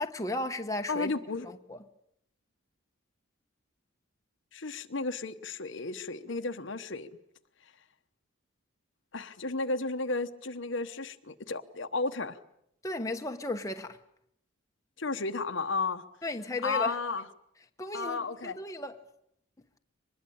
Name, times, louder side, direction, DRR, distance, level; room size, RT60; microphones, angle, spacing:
voice 1, 0.0-1.1 1.4-1.8 12.8-14.0 16.2-17.0 17.8-19.0, left 2 dB, 15° left, 1.1 m, -35 dB
voice 2, 0.9-1.5 4.5-7.1 9.1-12.4 15.0-16.0 16.6-17.2 17.9-18.6, left 3 dB, 65° left, 1.1 m, -33 dB
24.5 x 21.0 x 8.6 m
head